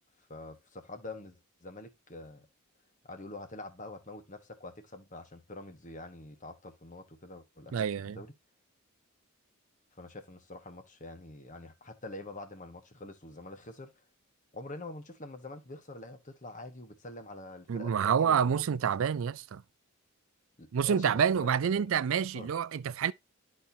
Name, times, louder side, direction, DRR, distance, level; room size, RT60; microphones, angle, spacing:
voice 1, 0.3-2.5 3.0-8.3 9.9-14.0 14.5-19.3 20.6-21.5 21.7-21.8 22.3-22.5, left 2 dB, 35° left, 1.2 m, -46 dB
voice 2, 7.7-8.2 17.7-19.6 20.7-23.1, right 7 dB, 70° right, 0.4 m, -28 dB
12.5 x 4.3 x 2.7 m
head